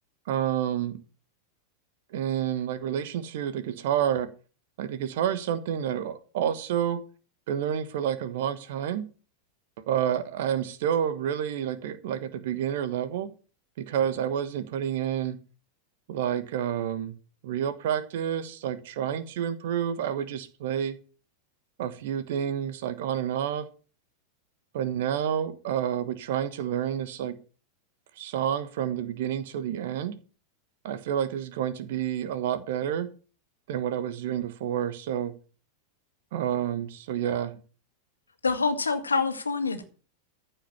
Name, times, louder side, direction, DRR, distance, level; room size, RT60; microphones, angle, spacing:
voice 1, 0.3-1.0 2.1-4.3 4.8-7.0 7.5-9.1 9.9-13.3 13.8-15.4 16.1-17.1 17.4-21.0 21.8-23.7 24.7-27.4 28.2-30.2 30.8-33.1 33.7-35.3 36.3-37.6, right 9 dB, 55° right, 1.3 m, -29 dB
voice 2, 38.4-39.8, left 4 dB, 75° left, 2.1 m, -26 dB
14.5 x 5.6 x 7.2 m
figure-of-eight pair, 90°, 0 cm